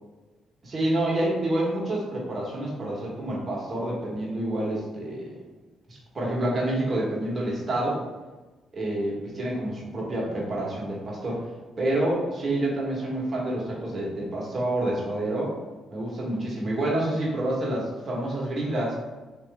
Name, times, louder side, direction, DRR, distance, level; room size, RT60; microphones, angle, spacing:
voice 1, 0.6-5.3 5.9-8.0 8.7-11.4 11.8-15.5 15.9-18.9, right 1 dB, 35° right, -4 dB, 1.3 m, -28 dB
3.2 x 2.9 x 3.5 m, 1.2 s
cardioid pair, 90°, 0 cm